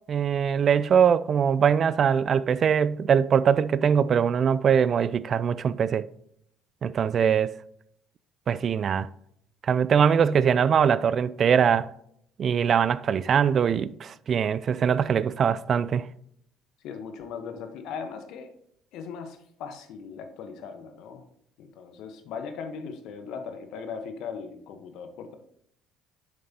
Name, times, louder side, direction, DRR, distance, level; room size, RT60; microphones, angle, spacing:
voice 1, 0.1-6.0 6.8-7.5 8.5-9.1 9.6-11.9 12.4-16.1, right 7 dB, 50° right, 0.3 m, -22 dB
voice 2, 16.8-18.5 18.9-21.3 21.6-25.3, left 6 dB, 70° left, 1.0 m, -38 dB
7.6 x 6.5 x 2.8 m
hypercardioid pair, 70°, 0 cm